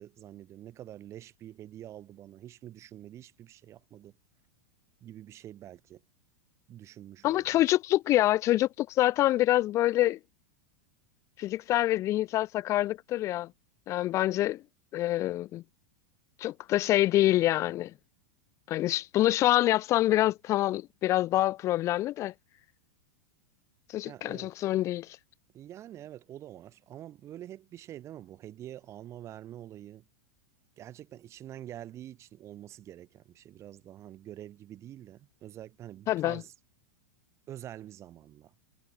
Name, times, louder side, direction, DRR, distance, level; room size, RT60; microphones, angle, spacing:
voice 1, 0.0-4.1 5.0-6.0 6.7-7.6 24.0-24.6 25.5-30.1 30.8-36.5 37.5-38.5, right 12 dB, 35° right, 2.8 m, -46 dB
voice 2, 7.2-10.2 11.4-13.5 13.9-14.6 14.9-15.6 16.4-17.9 18.7-22.3 23.9-25.2 36.1-36.4, left 15 dB, 35° left, 0.6 m, -26 dB
hypercardioid pair, 115°, 8 cm